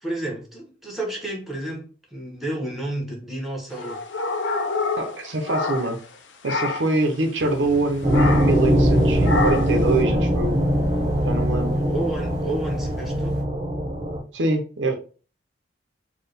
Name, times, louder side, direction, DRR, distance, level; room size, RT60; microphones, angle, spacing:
voice 1, 0.0-4.0 11.7-13.4, right 1 dB, ahead, -1 dB, 1.1 m, -31 dB
sound 1, 3.7-6.2 6.4-7.0 8.1-8.7 9.2-9.8, left 3 dB, 75° left, 0.5 m, -27 dB
voice 2, 5.0-6.0 6.4-10.6 11.2-11.8 14.3-15.0, right 2 dB, 75° right, 5 dB, 0.7 m, -24 dB
sound 2, 7.4-13.4, left 1 dB, 20° left, 1.9 m, -40 dB
sound 3, 8.0-14.2, equal, 35° right, 0.9 m, -21 dB
4.4 x 2.3 x 3.3 m, 0.38 s
head